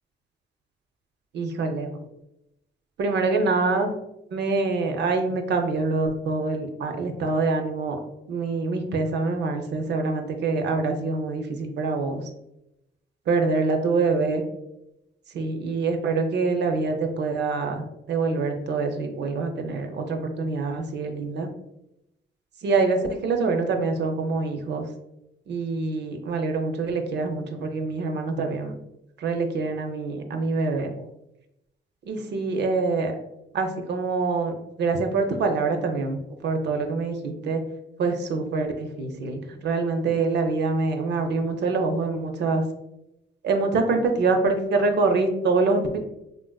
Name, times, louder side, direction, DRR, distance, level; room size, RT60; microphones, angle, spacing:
voice 1, 1.3-1.9 3.0-3.9 4.3-8.0 8.3-12.2 13.3-14.4 15.3-21.5 22.6-24.8 25.5-28.7 29.2-30.9 32.1-33.1 33.5-34.5 34.8-36.2 36.4-37.6 38.0-42.6 43.4-46.0, right 3 dB, 60° right, 5 dB, 0.4 m, -25 dB
3.5 x 2.5 x 2.2 m, 0.87 s
cardioid pair, 90°, 20 cm